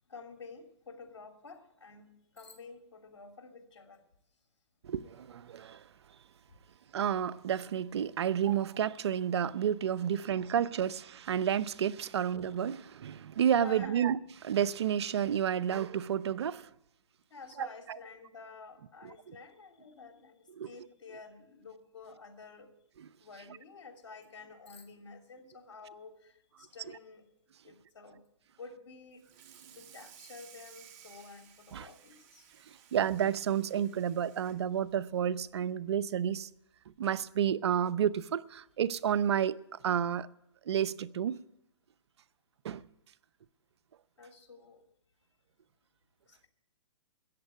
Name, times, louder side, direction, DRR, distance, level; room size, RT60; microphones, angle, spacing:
voice 1, 0.1-4.0 13.6-14.0 17.3-22.7 23.2-27.3 27.6-28.2 28.6-29.2 29.7-32.5 44.2-44.8 46.3-46.5, left 4 dB, 85° left, 3.0 m, -50 dB
voice 2, 4.8-5.8 6.9-16.7 17.6-18.0 19.3-19.4 20.6-20.7 23.0-23.1 31.7-31.9 32.7-36.5 37.0-39.6 39.8-40.3 40.7-41.4 42.6-42.8, right 9 dB, 65° right, 0.7 m, -30 dB
Water tap faucet / Sink (filling or washing), 29.1-35.8 36.2-36.4 36.8-36.9 37.3-37.4 38.5-38.6 39.1-39.3, right 9 dB, 35° right, 2.2 m, -57 dB
13.5 x 9.0 x 9.5 m
hypercardioid pair, 140°, 15 cm